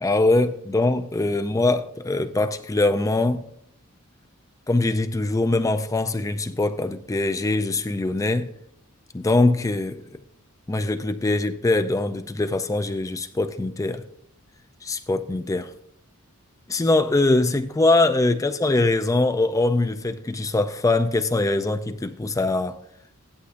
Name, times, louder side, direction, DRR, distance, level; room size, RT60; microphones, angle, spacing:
voice 1, 0.0-3.5 4.7-8.5 9.1-10.2 10.7-14.0 14.8-15.7 16.7-22.8, left 2 dB, 15° left, 0.4 m, -22 dB
16.5 x 11.5 x 2.6 m
head